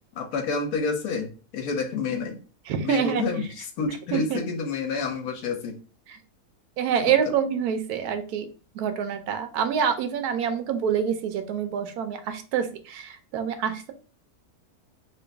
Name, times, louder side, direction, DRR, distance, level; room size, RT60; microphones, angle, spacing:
voice 1, 0.2-2.4 2.8-5.7 7.0-7.1, left 4 dB, 80° left, 4 dB, 1.2 m, -29 dB
voice 2, 2.7-3.3 4.1-4.4 6.8-8.5 8.7-13.9, right 7 dB, 85° right, 8 dB, 1.1 m, -26 dB
3.0 x 2.5 x 3.3 m, 0.36 s
omnidirectional pair, 1.6 m